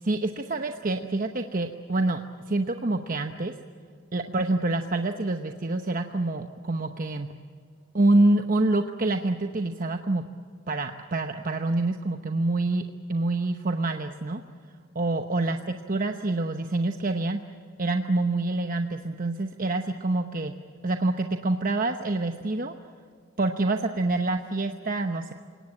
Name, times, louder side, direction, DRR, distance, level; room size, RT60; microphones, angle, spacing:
voice 1, 0.0-2.2 2.5-3.5 4.1-7.3 7.9-10.2 10.7-12.8 13.1-14.4 14.9-17.4 17.8-20.5 20.8-22.7 23.4-25.3, right 2 dB, 40° right, 6 dB, 0.9 m, -26 dB
29.0 x 18.5 x 8.8 m, 2.2 s
head